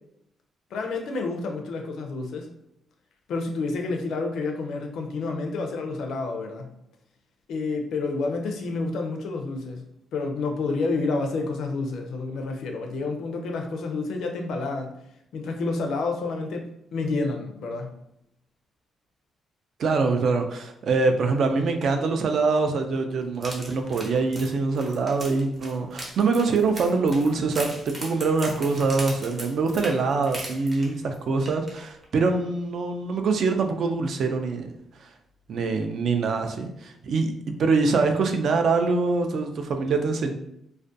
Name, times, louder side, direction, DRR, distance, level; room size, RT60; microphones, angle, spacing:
voice 1, 0.7-2.5 3.3-6.7 7.5-9.8 10.1-14.9 15.3-17.9, left 3 dB, 80° left, 3 dB, 0.4 m, -29 dB
voice 2, 19.8-34.7 35.0-35.1 35.5-37.3 37.6-40.3, right 4 dB, 60° right, 5 dB, 0.3 m, -24 dB
sound 1, 23.3-31.1 31.5-31.7 32.0-32.1, right 1 dB, 30° right, 0.7 m, -38 dB
2.3 x 2.1 x 2.5 m, 0.76 s
cardioid pair, 120°, 0 cm